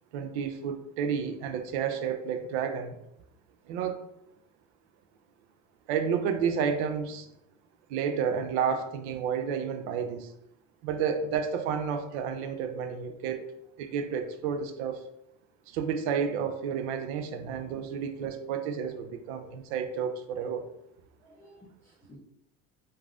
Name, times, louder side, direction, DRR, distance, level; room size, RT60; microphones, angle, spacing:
voice 1, 0.1-3.0 3.7-4.0 5.9-7.3 7.9-10.3 10.8-13.5 13.8-15.0 15.7-20.7, right 7 dB, 90° right, 8 dB, 0.5 m, -31 dB
voice 2, 21.2-22.2, equal, 10° left, -7 dB, 0.6 m, -55 dB
3.2 x 2.5 x 2.4 m, 0.80 s
supercardioid pair, 115°, 33 cm